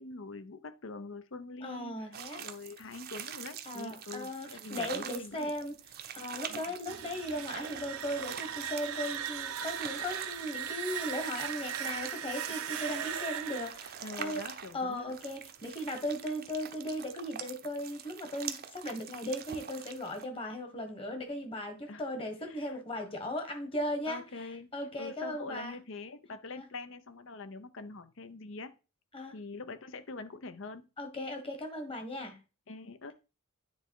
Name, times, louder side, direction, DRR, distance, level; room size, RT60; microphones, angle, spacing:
voice 1, 0.0-2.0 2.4-5.5 6.5-6.7 14.0-15.1 21.9-22.0 22.5-22.7 24.1-24.7 25.0-28.7 29.3-30.9 32.7-33.1, left 3 dB, 60° left, 0.7 m, -44 dB
voice 2, 1.6-2.4 3.6-5.8 6.1-14.4 14.7-24.2 24.7-25.8 26.6-26.7 29.1-29.3 31.0-32.4, left 1 dB, 25° left, 1.5 m, -37 dB
sound 1, 2.1-20.2, right 8 dB, 45° right, 0.6 m, -45 dB
sound 2, 6.7-15.5, right 9 dB, 90° right, 0.8 m, -39 dB
9.3 x 3.3 x 4.7 m
head